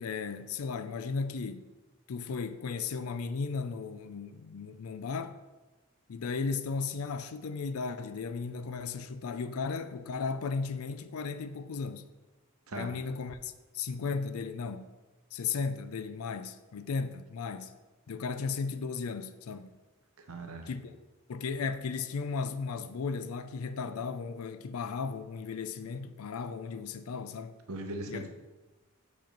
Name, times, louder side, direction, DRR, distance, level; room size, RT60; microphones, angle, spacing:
voice 1, 0.0-1.7 2.1-5.4 6.1-12.1 12.7-14.9 15.3-17.7 18.1-19.7 20.7-21.0 21.3-27.6 28.1-28.2, left 5 dB, 85° left, 0.4 m, -35 dB
voice 2, 20.2-20.7 27.7-28.3, right 2 dB, 80° right, 0.9 m, -39 dB
5.1 x 4.5 x 5.2 m
head